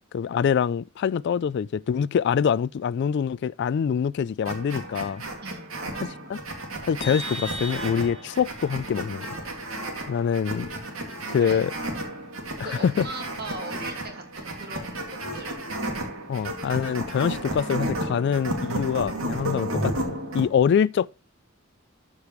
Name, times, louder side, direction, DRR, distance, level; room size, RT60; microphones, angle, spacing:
voice 1, 0.1-5.2 5.9-6.4 6.9-9.3 10.1-10.7 11.3-11.7 12.6-13.1 16.3-21.1, left 7 dB, 55° left, 0.3 m, -25 dB
sound 1, 4.4-20.5, right 1 dB, 85° right, 2.3 m, -33 dB
Vehicle horn car horn honking, 7.0-8.4, right 1 dB, 30° left, 3.7 m, -36 dB
voice 2, 11.4-11.7 12.6-15.6, right 2 dB, 50° right, 1.9 m, -38 dB
13.0 x 5.2 x 3.1 m
head